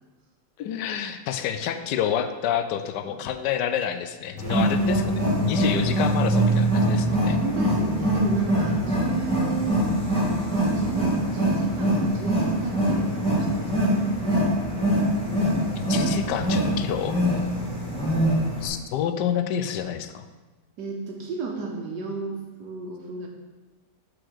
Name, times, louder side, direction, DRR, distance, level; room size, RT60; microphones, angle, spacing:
voice 1, 0.6-7.4 15.8-17.2 18.6-20.2, left 9 dB, 80° left, 9 dB, 1.2 m, -28 dB
voice 2, 4.3-5.5 7.4-9.8 10.7-14.2 15.2-15.6 20.8-23.3, right 4 dB, 75° right, 1 dB, 1.5 m, -34 dB
Wild animals, 4.4-18.7, right 1 dB, 5° left, 2.0 m, -23 dB
6.2 x 4.8 x 6.2 m, 1.2 s
omnidirectional pair, 1.8 m